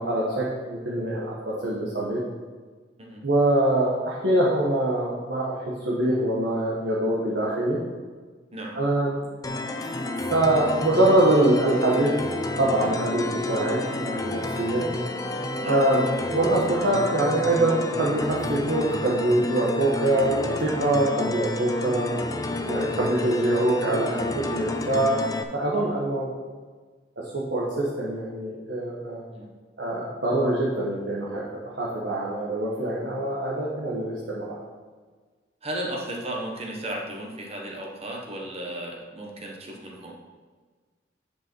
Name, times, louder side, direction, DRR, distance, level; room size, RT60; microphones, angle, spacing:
voice 1, 0.0-2.2 3.2-7.8 8.7-9.2 10.3-12.2 12.6-14.9 15.7-22.2 22.6-26.3 27.3-29.2 29.8-31.4 31.8-34.6, right 1 dB, 70° right, -5 dB, 1.4 m, -24 dB
sound 1, 9.4-25.4, left 2 dB, 20° left, 0.5 m, -30 dB
voice 2, 35.6-40.1, right 1 dB, 35° right, 0 dB, 1.4 m, -35 dB
9.6 x 5.4 x 4.6 m, 1.4 s
head